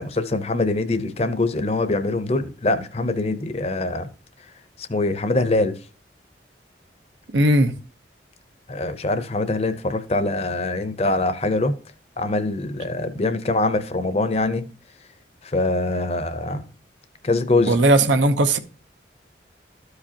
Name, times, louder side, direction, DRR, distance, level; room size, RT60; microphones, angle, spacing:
voice 1, 0.0-4.1 4.9-5.8 8.7-11.7 12.2-14.6 15.4-16.7 17.2-17.8, left 2 dB, 35° left, 0.6 m, -23 dB
voice 2, 7.3-7.7 17.7-18.6, right 1 dB, 85° right, 0.8 m, -17 dB
13.0 x 4.9 x 2.8 m
head